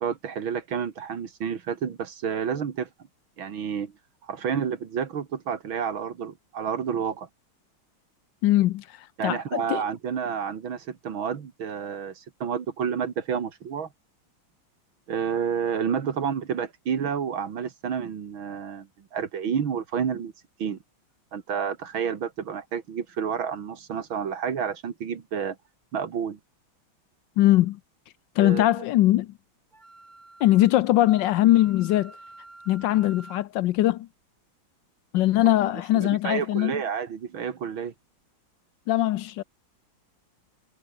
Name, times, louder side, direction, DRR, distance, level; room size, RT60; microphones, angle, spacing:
voice 1, 0.0-2.9 3.4-3.9 4.2-7.3 9.2-13.9 15.1-20.3 20.6-20.8 21.3-25.6 25.9-26.4 28.4-28.8 35.9-37.9, right 7 dB, 80° right, 2.7 m, -30 dB
voice 2, 8.4-9.8 27.4-27.8 28.4-29.3 30.4-32.1 32.7-34.1 35.1-36.8 38.9-39.4, left 15 dB, 70° left, 1.2 m, -21 dB
Wind instrument woodwind instrument, 29.7-33.5, right 2 dB, 20° right, 2.7 m, -49 dB
omnidirectional pair, 2.2 m